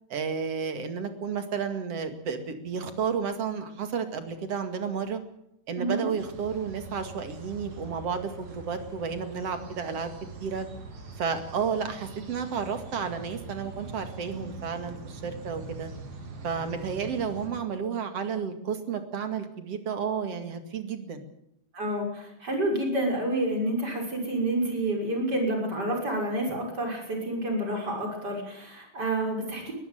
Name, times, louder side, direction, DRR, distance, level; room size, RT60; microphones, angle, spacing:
voice 1, 0.1-5.2 5.7-10.1 10.4-10.7 11.2-15.9 16.4-21.2, right 6 dB, 50° right, 7 dB, 2.9 m, -32 dB
voice 2, 5.8-6.1 21.7-29.7, right 1 dB, 25° right, 1 dB, 6.6 m, -29 dB
sound 1, 6.2-17.5, right 3 dB, 85° right, 5.2 m, -43 dB
22.5 x 14.5 x 9.4 m, 0.78 s
omnidirectional pair, 4.0 m